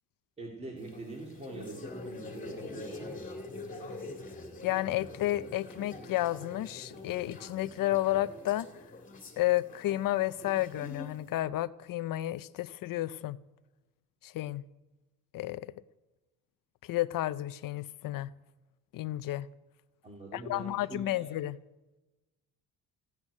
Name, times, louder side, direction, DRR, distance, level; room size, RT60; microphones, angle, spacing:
voice 1, 0.4-3.3 20.0-21.3, right 2 dB, 20° right, 2.4 m, -43 dB
sound 1, 0.8-11.3, left 2 dB, 25° left, 2.2 m, -45 dB
voice 2, 4.6-8.7 9.4-13.4 14.2-14.6 15.3-15.7 16.8-18.3 18.9-19.5 20.3-21.6, left 15 dB, 75° left, 0.6 m, -31 dB
15.5 x 8.2 x 9.7 m
cardioid pair, 170°, 34 cm